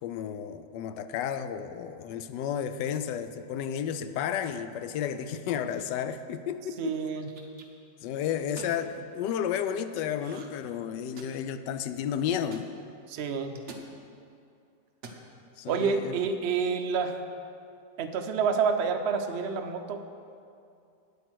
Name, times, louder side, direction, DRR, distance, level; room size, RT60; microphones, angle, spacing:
voice 1, 0.0-7.0 8.0-12.7 15.6-16.1, left 8 dB, 75° left, 11 dB, 1.2 m, -32 dB
sound 1, 5.8-6.1 6.9-7.6 8.4-8.8 10.2-10.6 10.9-11.5 12.5-12.7 13.5-13.9 14.9-15.2, right 3 dB, 50° right, 1.0 m, -46 dB
voice 2, 6.8-7.3 13.1-13.6 15.7-17.2 18.0-20.1, right 5 dB, 70° right, 6 dB, 0.6 m, -28 dB
9.2 x 8.5 x 6.1 m, 2.5 s
omnidirectional pair, 1.9 m